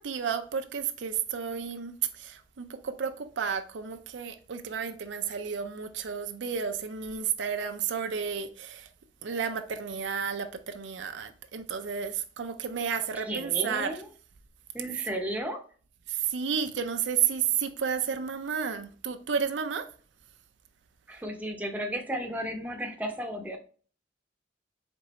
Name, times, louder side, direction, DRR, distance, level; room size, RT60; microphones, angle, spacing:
voice 1, 0.0-8.9 9.2-14.0 16.1-19.9, right 7 dB, 85° right, 0.5 m, -32 dB
voice 2, 13.3-14.1 14.7-15.6 21.1-23.6, right 1 dB, 10° right, 0.7 m, -34 dB
4.4 x 3.7 x 3.0 m
head